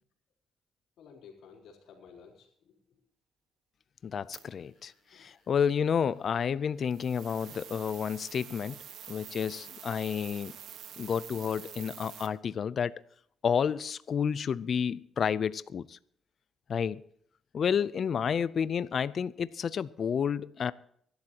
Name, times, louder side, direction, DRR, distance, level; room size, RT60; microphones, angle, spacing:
voice 1, 1.0-3.1 4.7-4.8 5.1-5.3 9.5-9.6 15.1-15.2, left 6 dB, 80° left, 3.9 m, -55 dB
voice 2, 4.0-8.8 9.1-10.5 11.0-13.0 13.4-16.0 16.7-17.0 17.5-20.7, left 7 dB, 55° left, 0.5 m, -30 dB
sound 1, 4.3-4.4 6.9-12.3, right 9 dB, 75° right, 1.4 m, -47 dB
24.0 x 12.0 x 2.9 m
cardioid pair, 90°, 0 cm